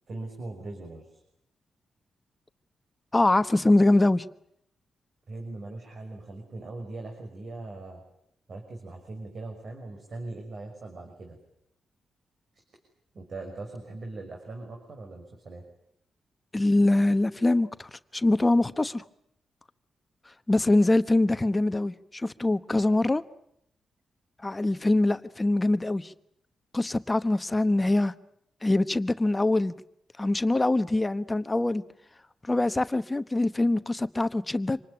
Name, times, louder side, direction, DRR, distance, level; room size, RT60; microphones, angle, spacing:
voice 1, 0.1-1.2 5.3-8.0 8.5-11.4 13.1-15.6, right 2 dB, 55° right, 6.0 m, -40 dB
voice 2, 3.1-4.2 16.5-19.0 20.3-23.2 24.4-26.1 26.7-28.1 28.6-29.8 30.2-31.8 32.4-34.8, left 2 dB, 20° left, 1.1 m, -24 dB
26.5 x 19.5 x 10.0 m
cardioid pair, 70°, 0 cm